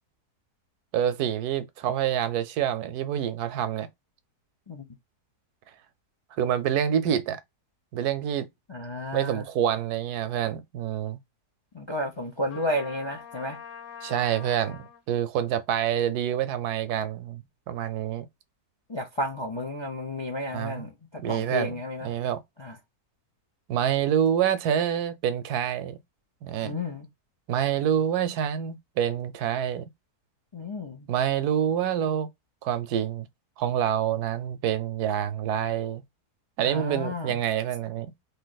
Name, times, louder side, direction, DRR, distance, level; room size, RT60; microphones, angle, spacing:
voice 1, 0.9-3.9 6.4-7.4 7.9-8.5 9.1-11.2 14.0-18.3 20.5-20.9 21.2-21.7 22.0-22.4 23.7-26.0 26.4-26.8 27.5-29.8 31.1-32.3 32.6-33.3 33.6-36.0 36.6-38.1, right 9 dB, 80° right, 1.1 m, -27 dB
voice 2, 8.7-9.5 11.7-13.6 18.9-22.1 22.6-22.8 26.6-27.1 30.5-31.1 36.6-37.4, left 1 dB, 35° left, 0.4 m, -32 dB
Trumpet, 12.5-15.0, left 8 dB, 55° left, 1.5 m, -44 dB
3.3 x 2.8 x 3.9 m
omnidirectional pair, 1.7 m